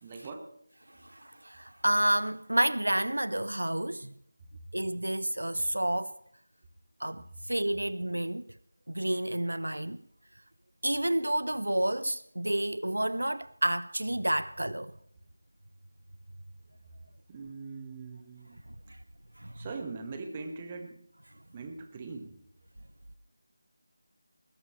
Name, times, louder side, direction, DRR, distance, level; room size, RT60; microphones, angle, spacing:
voice 1, 0.0-0.5 17.3-18.6 19.5-21.0 21.5-22.4, right 4 dB, 20° right, 1.6 m, -41 dB
voice 2, 0.9-4.1 4.7-6.2 7.0-8.5 8.9-10.0 10.8-14.9 19.4-19.5, right 1 dB, 70° right, 0.5 m, -30 dB
20.5 x 16.0 x 3.3 m
figure-of-eight pair, 165°, 0 cm